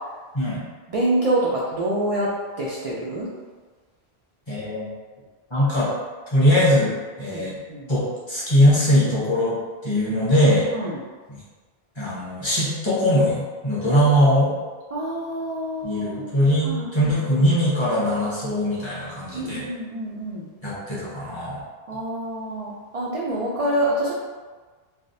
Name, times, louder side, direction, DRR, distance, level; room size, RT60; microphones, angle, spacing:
voice 1, 0.9-2.3 2.6-3.3 7.3-7.9 10.7-11.0 14.9-16.3 16.6-17.4 19.3-20.5 21.9-24.1, right 1 dB, 50° right, -5 dB, 0.4 m, -26 dB
voice 2, 4.5-4.9 5.5-5.9 6.3-6.9 7.2-7.6 7.9-9.6 9.8-10.7 12.0-14.5 15.8-19.6 20.6-21.6, equal, 30° left, -9 dB, 1.0 m, -21 dB
3.4 x 2.3 x 2.6 m, 1.4 s
omnidirectional pair, 1.0 m